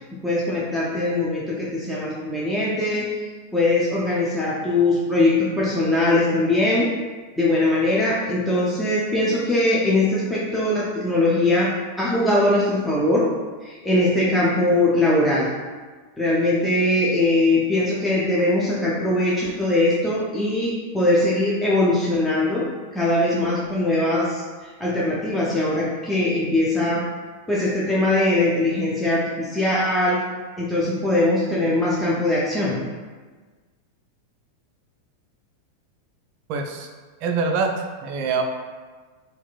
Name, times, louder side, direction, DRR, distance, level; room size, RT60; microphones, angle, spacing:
voice 1, 0.2-3.1 3.5-6.9 7.4-11.7 12.0-13.3 13.6-15.5 16.2-22.7 22.9-27.0 27.5-30.2 30.6-32.8, left 2 dB, 5° left, -6 dB, 0.5 m, -21 dB
voice 2, 36.5-36.9 37.2-37.7 38.0-38.4, right 5 dB, 45° right, 3 dB, 0.3 m, -24 dB
4.2 x 2.3 x 2.4 m, 1.4 s
figure-of-eight pair, 90°, 0 cm